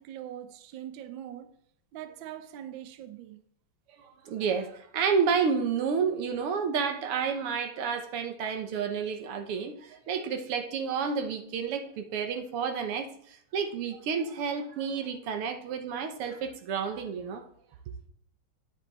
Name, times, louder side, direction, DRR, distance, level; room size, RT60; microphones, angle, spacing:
voice 1, 0.0-1.5 1.9-3.4, right 11 dB, 70° right, 1.4 m, -42 dB
voice 2, 4.0-17.4, right 6 dB, 85° right, 2.0 m, -30 dB
10.5 x 8.7 x 4.1 m
omnidirectional pair, 2.4 m